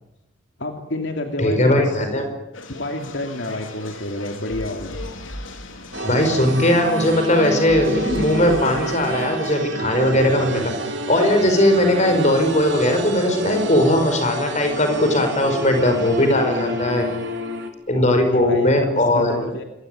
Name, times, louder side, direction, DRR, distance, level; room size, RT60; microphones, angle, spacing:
voice 1, 0.6-2.1 2.7-5.0 18.0-19.6, left 1 dB, 65° left, 4 dB, 2.7 m, -29 dB
voice 2, 1.4-2.3 6.0-17.1 17.9-19.5, left 1 dB, 35° left, 6 dB, 5.4 m, -19 dB
sound 1, 2.5-9.6, left 2 dB, 85° left, 3.6 m, -36 dB
sound 2, 5.9-17.7, right 1 dB, 65° right, 3.4 m, -29 dB
27.0 x 23.0 x 9.3 m, 0.93 s
head